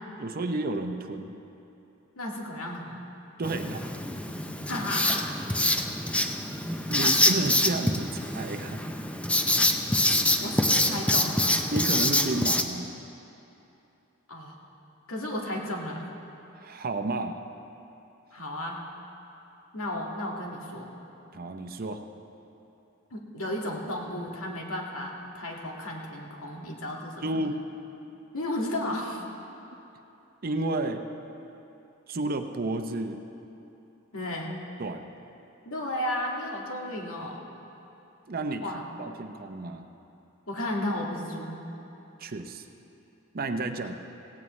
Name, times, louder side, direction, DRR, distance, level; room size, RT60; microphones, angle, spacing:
voice 1, 0.2-1.4 3.4-4.2 6.9-8.8 11.7-12.9 16.5-17.4 21.3-22.0 27.2-27.6 30.4-31.0 32.1-33.2 34.8-35.1 38.3-38.7 39.0-39.9 42.2-42.7 43.3-43.9, right 2 dB, 45° right, 7 dB, 0.7 m, -31 dB
voice 2, 2.2-3.0 4.6-5.4 6.9-7.2 10.4-11.5 14.3-14.6 15.1-16.0 18.3-18.9 19.7-20.9 23.1-27.3 28.3-29.2 34.1-34.5 35.7-37.4 38.6-38.8 40.5-41.7, left 1 dB, 90° left, -1 dB, 2.0 m, -33 dB
Writing, 3.4-12.6, left 1 dB, 5° left, 0.5 m, -26 dB
17.0 x 16.5 x 3.2 m, 3.0 s
head